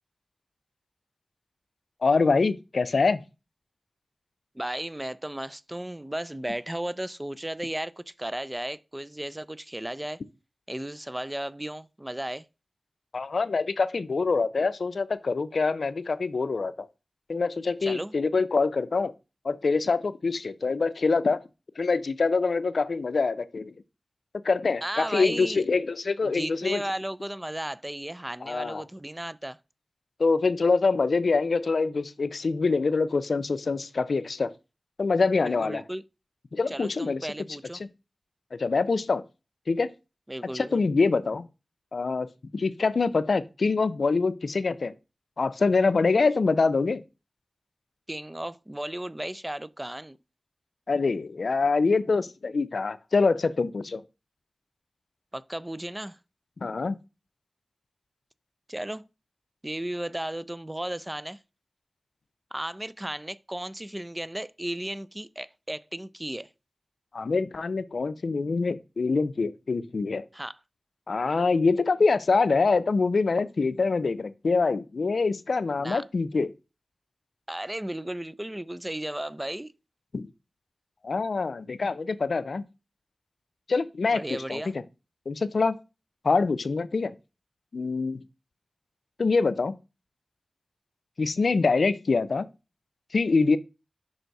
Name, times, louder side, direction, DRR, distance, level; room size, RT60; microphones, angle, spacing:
voice 1, 2.0-3.2 13.1-16.7 17.3-19.1 19.4-21.4 21.8-23.7 24.4-26.8 28.4-28.8 30.2-34.5 35.0-35.8 36.5-37.2 37.8-37.9 38.5-39.2 39.7-39.9 40.5-41.5 41.9-42.3 42.5-44.9 45.4-47.0 50.9-54.0 56.6-57.0 67.1-70.2 71.1-76.5 80.1-80.3 81.0-82.6 83.7-84.2 84.5-84.7 85.3-85.8 86.2-87.1 87.7-88.2 89.2-89.8 91.2-92.5 93.1-93.6, left 4 dB, 80° left, 0.4 m, -25 dB
voice 2, 4.5-10.2 10.7-12.5 17.8-18.1 24.8-25.6 26.2-29.6 35.4-36.0 36.7-37.8 40.3-40.8 48.1-50.2 55.3-56.2 58.7-59.1 59.6-61.4 62.5-66.5 70.3-70.6 75.8-76.0 77.5-79.7 84.1-84.7, right 1 dB, 20° right, 0.4 m, -35 dB
5.5 x 3.9 x 4.5 m
cardioid pair, 45°, 0 cm